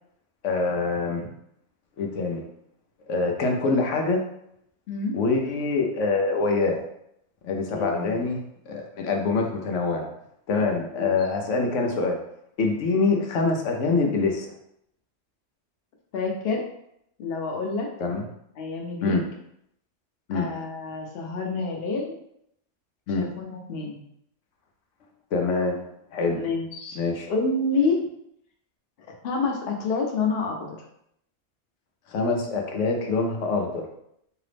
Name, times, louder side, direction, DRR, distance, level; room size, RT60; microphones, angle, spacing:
voice 1, 0.4-1.3 2.0-2.4 3.1-4.2 5.1-6.8 7.4-8.4 8.7-10.1 10.5-12.2 12.6-14.5 18.0-18.2 19.0-19.2 20.3-20.5 23.1-23.3 25.3-25.8 26.1-26.5 27.0-27.3 32.1-33.9, left 3 dB, 90° left, 2 dB, 1.0 m, -25 dB
voice 2, 7.7-8.2 10.8-11.1 16.1-16.6 17.2-17.9 18.6-19.2 20.3-22.2 23.2-24.0 26.3-27.0 27.3-28.0 29.2-30.8, left 3 dB, 60° left, 1 dB, 0.9 m, -28 dB
3.7 x 2.9 x 3.3 m, 0.75 s
omnidirectional pair, 1.2 m